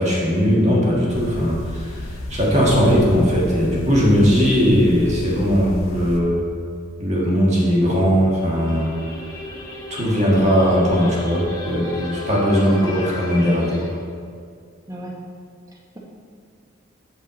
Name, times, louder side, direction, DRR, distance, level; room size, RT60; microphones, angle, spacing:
voice 1, 0.0-6.4 7.0-8.9 9.9-13.9, equal, 35° right, -4 dB, 1.4 m, -18 dB
sound 1, 1.1-6.2, left 1 dB, 90° left, 0.7 m, -32 dB
sound 2, 8.4-13.9, left 2 dB, 15° left, 0.8 m, -35 dB
voice 2, 15.7-16.0, right 1 dB, 15° right, -2 dB, 0.9 m, -37 dB
7.8 x 5.3 x 4.0 m, 2.2 s
head